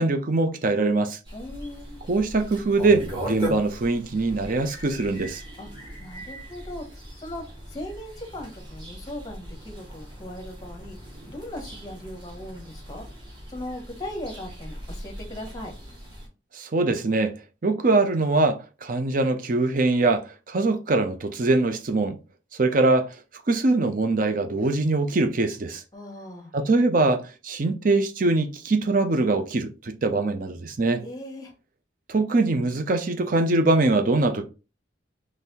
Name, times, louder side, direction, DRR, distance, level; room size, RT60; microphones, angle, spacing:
voice 1, 0.0-1.2 2.1-5.4 16.5-17.3 17.6-22.2 22.6-23.1 23.5-25.8 26.5-31.0 32.1-34.4, right 2 dB, 45° right, 0.5 m, -23 dB
sound 1, 1.2-16.3, equal, 25° right, 1.6 m, -39 dB
voice 2, 1.3-2.0 5.6-5.7 6.0-11.0 11.3-13.1 13.5-15.7 25.9-26.5 31.0-31.5, left 1 dB, 20° left, 0.8 m, -38 dB
3.9 x 3.2 x 2.8 m
head